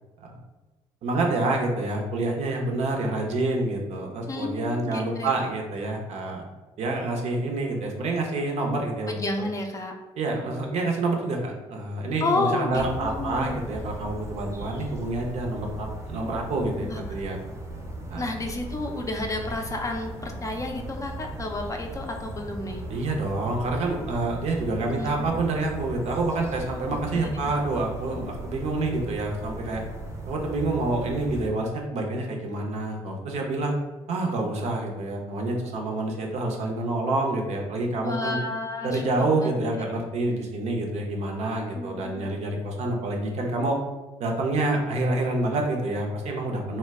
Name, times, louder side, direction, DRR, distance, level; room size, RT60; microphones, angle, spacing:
voice 1, 1.0-6.4 6.8-9.1 10.2-17.4 18.1-18.3 22.9-29.8 30.3-33.7 34.1-38.4 38.8-43.8 44.2-46.8, right 2 dB, 60° right, 1 dB, 0.6 m, -27 dB
voice 2, 4.3-5.3 9.1-9.9 12.2-13.6 16.8-17.0 18.1-22.8 24.8-25.1 26.9-27.5 38.0-39.8 41.7-42.3, left 2 dB, 25° left, 2 dB, 0.4 m, -31 dB
sound 1, 12.7-31.5, right 1 dB, 20° right, 0.6 m, -37 dB
2.1 x 2.1 x 3.4 m, 1.1 s
supercardioid pair, 70°, 13 cm